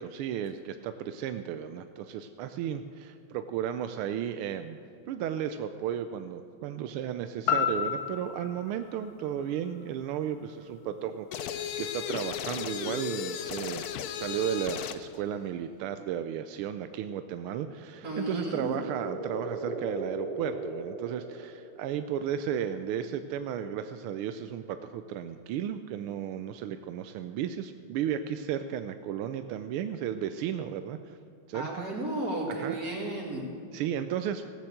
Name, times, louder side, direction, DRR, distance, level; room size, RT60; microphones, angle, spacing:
voice 1, 0.0-4.8 5.1-13.9 14.1-31.2 31.5-31.8 32.5-32.8 33.7-34.4, right 9 dB, 85° right, 9 dB, 1.5 m, -34 dB
sound 1, 7.5-11.5 12.0-12.1, left 8 dB, 55° left, 1.3 m, -34 dB
sound 2, 11.3-15.1, left 9 dB, 70° left, 0.9 m, -35 dB
sound 3, 17.8-22.0, right 2 dB, 20° right, 1.4 m, -38 dB
voice 2, 18.0-18.7 31.5-33.4, right 1 dB, 40° right, -2 dB, 3.1 m, -33 dB
17.0 x 6.9 x 7.9 m, 2.6 s
omnidirectional pair, 2.3 m